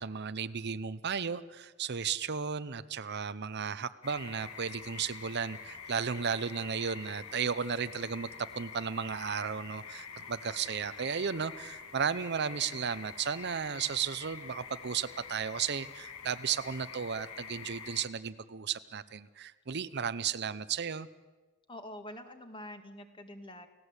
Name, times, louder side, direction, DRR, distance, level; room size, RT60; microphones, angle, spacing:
voice 1, 0.0-21.1, right 6 dB, 50° right, 13 dB, 0.7 m, -34 dB
sound 1, 4.0-18.1, left 6 dB, 85° left, 1.6 m, -47 dB
voice 2, 21.7-23.7, left 1 dB, 25° left, 7 dB, 1.8 m, -46 dB
30.0 x 17.0 x 8.1 m, 1.3 s
head